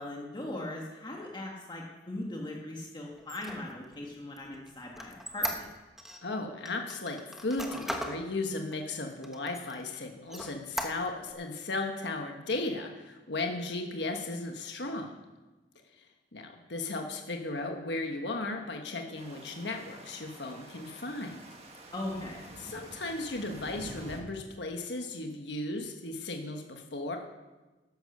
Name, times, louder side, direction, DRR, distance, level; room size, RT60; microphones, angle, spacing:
voice 1, 0.0-5.7 21.9-22.5, left 1 dB, 25° left, -1 dB, 1.5 m, -39 dB
Squeak, 3.2-6.2 6.7-8.2 8.7-8.8 9.2-9.9 10.3-11.3, equal, ahead, 1.1 m, -37 dB
voice 2, 6.2-15.1 16.0-16.1 16.3-21.4 22.6-27.2, left 2 dB, 75° left, 3 dB, 1.4 m, -36 dB
sound 1, 19.2-24.2, right 1 dB, 35° right, 1.8 m, -48 dB
12.0 x 10.5 x 6.8 m, 1.2 s
head